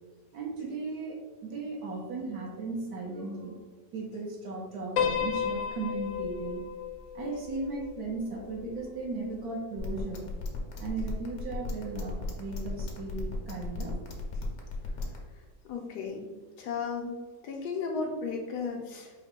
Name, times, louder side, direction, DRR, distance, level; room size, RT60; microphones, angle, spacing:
voice 1, 0.3-3.6 3.9-6.6 7.1-10.3 10.8-14.0, right 3 dB, 65° right, 0 dB, 1.2 m, -36 dB
Piano, 5.0-9.4, left 7 dB, 90° left, 1.3 m, -34 dB
sound 1, 9.8-15.2, left 4 dB, 55° left, 1.0 m, -36 dB
voice 2, 15.7-16.3 16.6-17.2 17.4-19.1, left 5 dB, 75° left, 1 dB, 1.2 m, -34 dB
4.9 x 2.2 x 4.4 m, 1.3 s
omnidirectional pair, 1.9 m